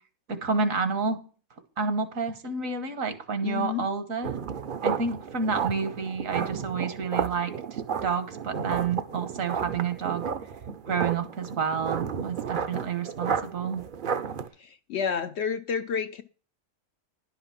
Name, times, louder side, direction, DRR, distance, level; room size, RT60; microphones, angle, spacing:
voice 1, 0.3-1.2 1.8-4.3 4.8-10.3 10.8-13.8, right 5 dB, 70° right, 1.6 m, -29 dB
voice 2, 3.4-3.8 14.6-16.2, left 7 dB, 60° left, 0.7 m, -30 dB
sound 1, 4.2-14.5, right 6 dB, 50° right, 0.7 m, -32 dB
11.0 x 5.8 x 5.8 m
omnidirectional pair, 1.5 m